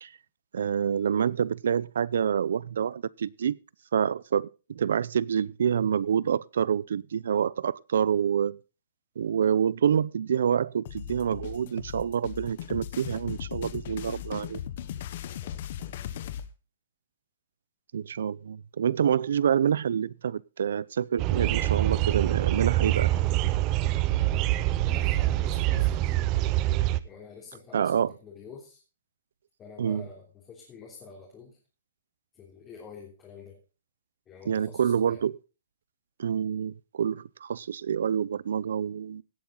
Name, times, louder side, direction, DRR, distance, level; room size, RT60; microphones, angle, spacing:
voice 1, 0.5-3.6 3.9-8.6 9.2-14.6 17.9-23.1 27.7-28.1 29.8-30.1 34.5-35.4 36.2-39.2, right 8 dB, 75° right, 0.6 m, -27 dB
sound 1, 10.8-16.5, left 10 dB, 45° left, 1.0 m, -38 dB
voice 2, 15.0-16.1 24.1-24.5 24.8-26.1 27.0-28.8 29.6-31.6 32.3-33.6 34.3-35.2, left 5 dB, 15° left, 3.2 m, -48 dB
sound 2, 21.2-27.0, right 15 dB, 25° right, 0.6 m, -25 dB
17.0 x 8.8 x 3.9 m
hypercardioid pair, 170°, 0 cm